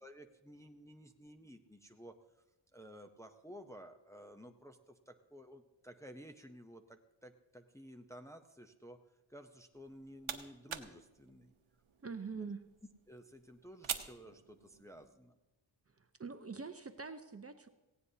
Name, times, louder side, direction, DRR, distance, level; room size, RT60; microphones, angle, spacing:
voice 1, 0.0-2.1 2.7-9.0 9.3-11.5 12.4-12.5 13.1-15.3, equal, 5° left, 5 dB, 0.7 m, -54 dB
sound 1, 9.7-15.1, right 7 dB, 75° right, 1.0 m, -47 dB
voice 2, 12.0-12.7 16.0-17.7, right 4 dB, 30° right, 8 dB, 0.7 m, -44 dB
18.0 x 16.5 x 2.8 m, 1.0 s
wide cardioid pair, 115°, 48 cm